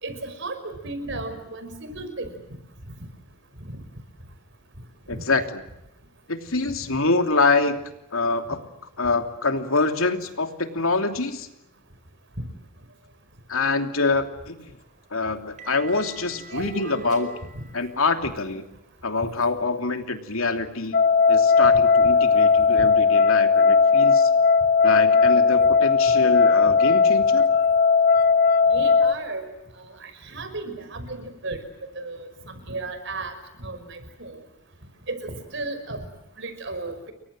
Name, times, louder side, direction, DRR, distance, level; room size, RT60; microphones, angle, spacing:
voice 1, 0.0-2.3 5.1-5.2 16.2-17.3 22.0-22.1 28.7-29.4 30.0-31.6 32.0-33.3 33.6-34.3 35.1-36.1 36.4-36.9, right 2 dB, 55° right, 9 dB, 5.5 m, -34 dB
voice 2, 5.1-5.6 6.3-7.8 8.1-8.6 9.0-11.5 13.5-14.8 15.1-17.3 17.7-18.6 19.0-24.3 24.8-27.5, left 3 dB, 75° left, 6 dB, 3.0 m, -25 dB
sound 1, 14.5-19.3, right 4 dB, 35° right, 4.6 m, -48 dB
sound 2, 20.9-29.1, left 5 dB, 45° left, 1.0 m, -17 dB
30.0 x 23.5 x 7.8 m, 0.86 s
head